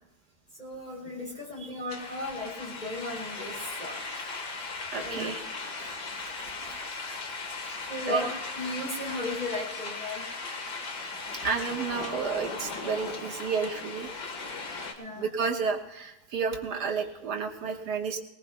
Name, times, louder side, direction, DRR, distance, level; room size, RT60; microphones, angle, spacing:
voice 1, 0.6-4.0 5.0-5.3 7.9-8.3 8.5-10.2 10.5-10.6 15.0-15.3, left 1 dB, 25° left, -2 dB, 3.0 m, -35 dB
sound 1, 1.9-14.9, left 3 dB, 80° left, 2.1 m, -38 dB
voice 2, 4.9-5.4 5.8-7.2 8.1-8.2 11.4-14.1 15.2-18.2, right 5 dB, 75° right, 3 dB, 1.9 m, -32 dB
20.0 x 20.0 x 2.2 m, 0.97 s
omnidirectional pair, 1.8 m